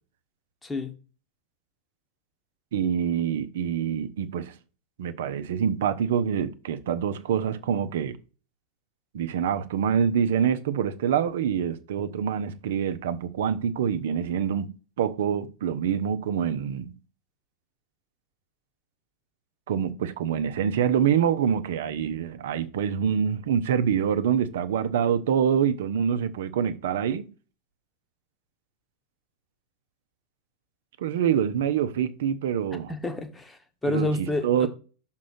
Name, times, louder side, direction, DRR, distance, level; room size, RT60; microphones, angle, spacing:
voice 1, 0.6-0.9 32.9-34.7, left 2 dB, 10° left, 1.2 m, -29 dB
voice 2, 2.7-4.5 5.0-8.2 9.1-14.7 15.0-16.9 19.7-27.3 31.0-32.9 33.8-34.7, right 8 dB, 55° right, 0.7 m, -26 dB
6.3 x 3.7 x 6.1 m
figure-of-eight pair, 90°, 0 cm